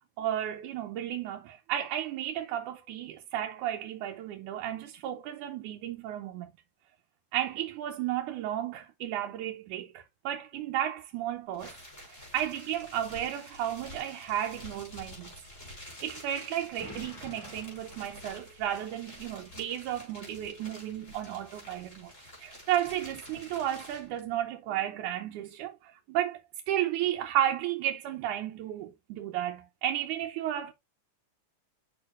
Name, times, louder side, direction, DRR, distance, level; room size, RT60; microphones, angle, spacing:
voice 1, 0.2-6.5 7.3-11.8 12.3-15.3 16.0-22.1 22.4-30.7, right 11 dB, 85° right, 2.3 m, -33 dB
sound 1, 11.5-24.2, left 1 dB, 25° left, 4.6 m, -48 dB
Explosion, 16.8-19.0, left 2 dB, 65° left, 3.9 m, -50 dB
8.4 x 6.4 x 2.4 m
omnidirectional pair, 3.4 m